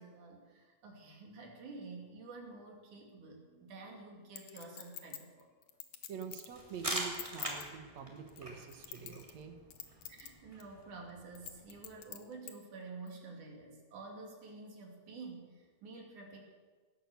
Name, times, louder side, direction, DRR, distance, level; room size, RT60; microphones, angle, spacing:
voice 1, 0.0-5.5 10.1-16.4, right 3 dB, 85° right, 0 dB, 4.1 m, -50 dB
voice 2, 3.2-3.7 6.1-9.6, right 7 dB, 65° right, 5 dB, 2.5 m, -46 dB
Chink clink, 4.4-6.6 7.0-7.7 8.3-9.4 9.7-10.3 10.6-10.7 11.4-12.5 13.1-13.2, left 11 dB, 75° left, 2.4 m, -46 dB
sound 1, 6.5-12.0, right 1 dB, 10° right, 2.7 m, -44 dB
18.0 x 11.0 x 7.1 m, 1.4 s
omnidirectional pair, 3.4 m